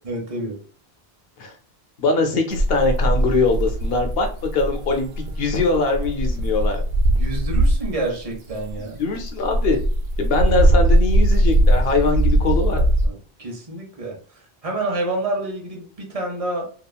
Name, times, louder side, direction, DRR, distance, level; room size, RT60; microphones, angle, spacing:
voice 1, 0.0-0.6 7.2-9.0 12.7-14.2 14.6-16.7, right 2 dB, 40° right, 1 dB, 0.8 m, -28 dB
voice 2, 2.0-4.3 4.5-5.1 5.4-6.8 9.0-9.8 10.2-12.8, left 3 dB, 70° left, 4 dB, 0.9 m, -22 dB
sound 1, 2.5-8.0 8.5-13.0, right 1 dB, 85° right, 0.8 m, -19 dB
2.9 x 2.4 x 2.3 m, 0.43 s
omnidirectional pair, 1.0 m